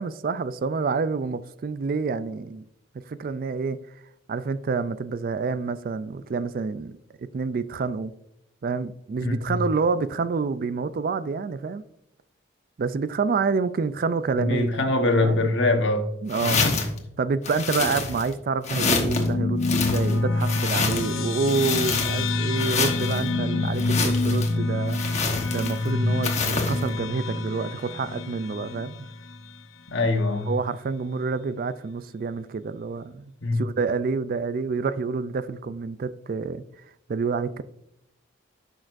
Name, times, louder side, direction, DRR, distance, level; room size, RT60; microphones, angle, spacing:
voice 1, 0.0-2.6 3.1-3.8 4.3-8.1 8.6-11.8 12.8-15.5 16.2-16.6 17.2-25.2 25.5-29.0 30.5-36.6 37.1-37.6, right 4 dB, 45° right, 0.3 m, -28 dB
voice 2, 9.2-9.6 14.4-16.1 16.4-16.8 25.8-26.1 29.9-30.5 33.4-33.6, left 2 dB, 60° left, 1.1 m, -23 dB
sound 1, 16.3-17.0 17.4-18.3 18.6-19.3 19.6-21.2 21.5-22.3 22.6-23.2 23.8-24.5 24.9-25.9 26.2-26.8, left 4 dB, 35° left, 1.1 m, -27 dB
sound 2, 18.7-29.5, left 2 dB, 80° left, 0.8 m, -27 dB
10.5 x 6.4 x 2.6 m
head